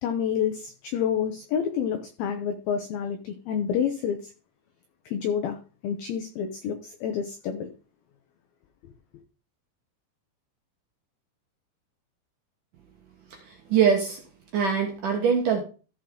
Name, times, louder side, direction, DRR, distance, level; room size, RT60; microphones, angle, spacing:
voice 1, 0.0-4.3 5.1-5.6 5.8-7.7, left 8 dB, 80° left, 2.1 m, -28 dB
voice 2, 13.4-14.2 14.5-15.6, right 7 dB, 65° right, 2.2 m, -23 dB
14.5 x 6.4 x 3.7 m
omnidirectional pair, 5.4 m